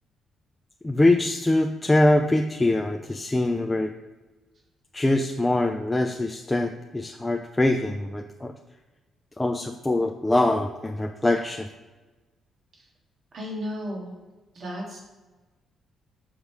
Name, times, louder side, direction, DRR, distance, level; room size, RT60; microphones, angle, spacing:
voice 1, 0.8-3.9 4.9-8.5 9.4-11.7, left 2 dB, 15° left, 4 dB, 0.4 m, -23 dB
voice 2, 13.3-14.1 14.5-15.0, equal, 50° right, -2 dB, 1.9 m, -34 dB
6.5 x 3.6 x 4.7 m, 1.2 s
cardioid pair, 90°, 0 cm